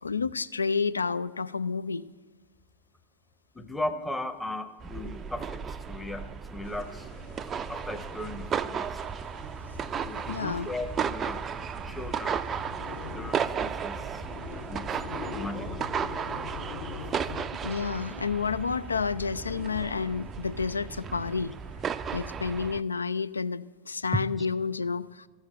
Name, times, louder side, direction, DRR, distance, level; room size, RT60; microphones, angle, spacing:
voice 1, 0.0-2.0 10.3-10.7 17.6-21.5 22.1-25.3, left 5 dB, 75° left, 14 dB, 0.3 m, -30 dB
voice 2, 3.5-7.1 7.5-9.0 10.0-11.5 11.7-12.4 13.1-14.2 14.7-16.7 17.1-17.2, left 2 dB, 5° left, 9 dB, 0.7 m, -38 dB
sound 1, 4.8-22.8, right 7 dB, 25° right, 0.4 m, -35 dB
sound 2, 6.6-17.5, left 7 dB, 55° left, 1.0 m, -44 dB
13.5 x 6.4 x 8.7 m, 1.3 s
figure-of-eight pair, 90°, 0 cm